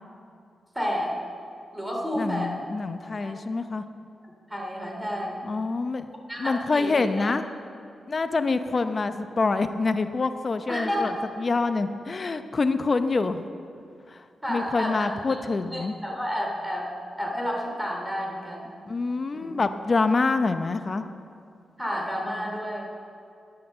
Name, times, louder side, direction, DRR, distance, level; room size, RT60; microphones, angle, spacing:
voice 1, 0.7-1.1 1.7-2.5 3.1-3.4 4.5-5.4 6.3-7.0 10.7-11.1 14.4-15.2 15.7-16.9 17.2-18.8 19.3-19.5 21.8-22.9, equal, 5° right, -1 dB, 2.8 m, -30 dB
voice 2, 2.2-3.9 5.4-6.1 6.4-7.5 8.1-13.5 14.1-16.0 18.9-21.0, left 3 dB, 40° left, 9 dB, 0.7 m, -26 dB
11.0 x 9.3 x 6.9 m, 2.4 s
cardioid pair, 80°, 0 cm